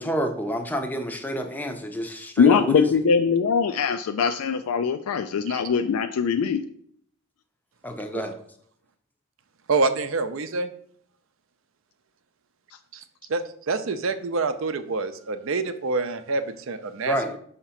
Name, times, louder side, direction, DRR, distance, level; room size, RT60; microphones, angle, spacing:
voice 1, 0.0-2.9 7.8-8.4 17.0-17.3, equal, 10° left, 5 dB, 0.5 m, -28 dB
voice 2, 2.4-6.6, left 6 dB, 75° left, 8 dB, 0.3 m, -22 dB
voice 3, 9.7-10.7 12.9-13.0 13.3-17.4, right 3 dB, 60° right, 10 dB, 0.5 m, -27 dB
5.9 x 2.9 x 5.5 m, 0.64 s
head